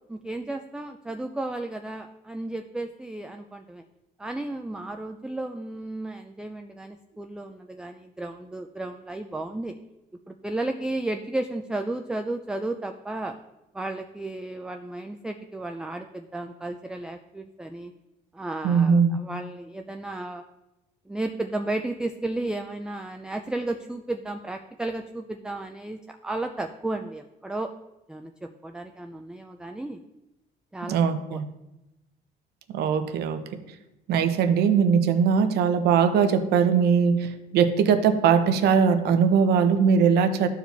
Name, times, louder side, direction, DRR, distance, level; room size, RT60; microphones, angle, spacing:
voice 1, 0.1-3.8 4.2-9.7 10.3-13.3 13.7-17.9 18.3-20.4 21.1-27.7 28.1-30.0 30.7-31.0 31.3-31.4, right 2 dB, 5° right, 5 dB, 0.4 m, -33 dB
voice 2, 18.6-19.1 30.9-31.5 32.7-33.4 34.1-40.5, right 6 dB, 75° right, 9 dB, 0.8 m, -20 dB
13.0 x 4.8 x 3.4 m, 0.96 s
cardioid pair, 110°, 17 cm